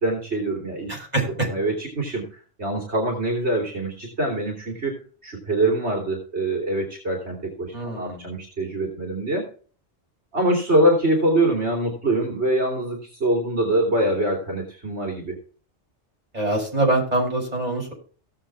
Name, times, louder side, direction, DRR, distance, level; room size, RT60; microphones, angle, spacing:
voice 1, 0.0-0.9 1.5-4.9 5.2-9.5 10.3-15.4, right 1 dB, 65° right, -1 dB, 3.3 m, -24 dB
voice 2, 0.9-1.5 7.7-8.3 16.3-17.9, right 2 dB, 35° right, -2 dB, 6.6 m, -24 dB
18.0 x 7.4 x 3.5 m, 0.40 s
omnidirectional pair, 1.2 m